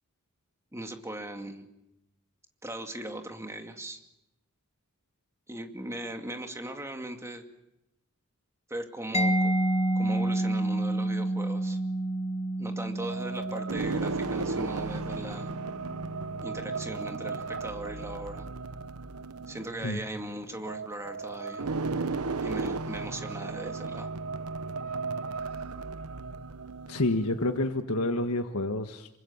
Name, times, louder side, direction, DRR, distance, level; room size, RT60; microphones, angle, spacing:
voice 1, 0.7-1.7 2.6-4.0 5.5-7.4 8.7-9.6 9.9-11.8 12.6-15.5 16.4-18.5 19.5-21.7 22.4-24.1, right 1 dB, 15° right, 4 dB, 2.4 m, -39 dB
Mallet percussion, 9.1-16.7, right 1 dB, 30° left, 1.3 m, -30 dB
sound 1, 13.0-27.7, right 3 dB, 80° right, 0.9 m, -35 dB
voice 2, 26.9-29.1, left 2 dB, 90° left, 6 dB, 1.5 m, -28 dB
27.0 x 24.5 x 7.3 m, 0.88 s
head